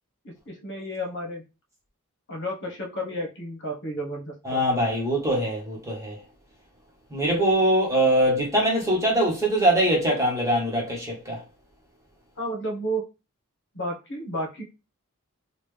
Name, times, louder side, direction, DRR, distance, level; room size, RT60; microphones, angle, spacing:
voice 1, 0.2-1.4 2.3-4.6 12.4-13.0 13.7-14.6, equal, 55° left, 1.2 m, -32 dB
voice 2, 4.4-6.2 7.1-11.4, right 1 dB, 15° right, 1.3 m, -22 dB
4.1 x 2.4 x 3.3 m
head